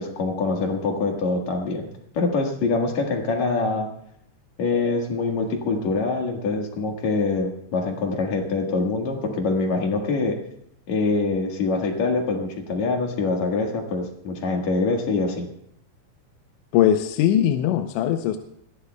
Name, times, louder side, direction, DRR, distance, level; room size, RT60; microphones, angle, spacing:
voice 1, 0.0-1.9 2.1-3.9 4.6-10.4 10.9-15.5, left 3 dB, 55° left, 2 dB, 2.2 m, -24 dB
voice 2, 16.7-18.4, left 11 dB, 80° left, 6 dB, 2.9 m, -20 dB
21.5 x 16.5 x 2.3 m, 0.72 s
omnidirectional pair, 5.3 m